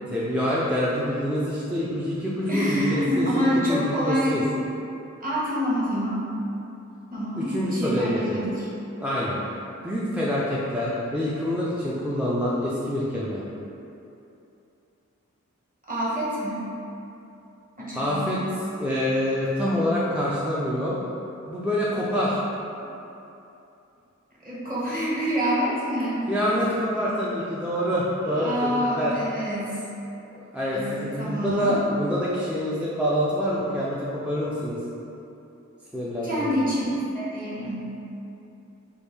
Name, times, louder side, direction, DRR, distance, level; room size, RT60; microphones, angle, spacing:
voice 1, 0.1-4.4 7.4-8.4 9.0-9.4 9.8-13.4 18.0-18.4 18.8-20.9 21.5-22.4 26.3-29.1 30.3-34.8 35.9-36.5, equal, 5° right, -8 dB, 0.4 m, -26 dB
voice 2, 2.5-4.4 5.2-6.3 7.1-8.7 15.9-16.6 17.8-18.4 24.4-26.2 28.3-29.8 30.7-31.8 36.2-36.9 37.1-37.9, equal, 30° right, -8 dB, 1.1 m, -27 dB
3.5 x 2.3 x 3.3 m, 2.8 s
wide cardioid pair, 55°, 29 cm